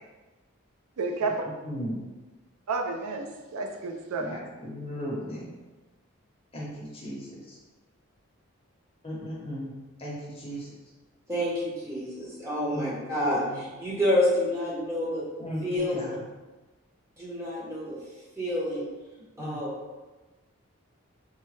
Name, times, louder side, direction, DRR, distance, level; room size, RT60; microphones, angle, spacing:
voice 1, 1.0-1.5 2.7-4.3, right 3 dB, 85° right, 0.4 m, -31 dB
voice 2, 1.6-2.0 4.2-5.5 6.5-7.6 9.0-9.7 10.0-10.7 12.7-13.0 13.3-13.6 15.4-16.2 19.4-19.6, equal, 25° left, 0.7 m, -36 dB
voice 3, 11.3-15.2 15.6-16.0 17.2-18.0 18.4-18.9 19.4-19.7, left 1 dB, 15° right, 0.8 m, -28 dB
3.5 x 2.1 x 3.1 m
head